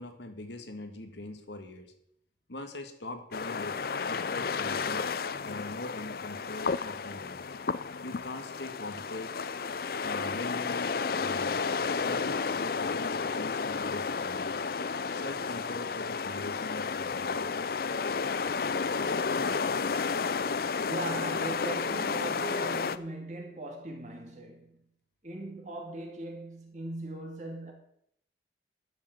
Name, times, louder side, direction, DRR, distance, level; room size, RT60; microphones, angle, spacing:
voice 1, 0.0-1.9 2.5-3.8 4.0-5.1 5.4-7.4 8.0-9.3 10.0-11.6 12.0-14.6 15.1-17.6, left 2 dB, 70° left, 1.8 m, -42 dB
sound 1, 3.3-23.0, left 5 dB, 55° left, 0.5 m, -32 dB
voice 2, 20.6-24.8 25.2-27.7, right 1 dB, 40° right, 2.6 m, -39 dB
11.5 x 6.9 x 8.0 m
head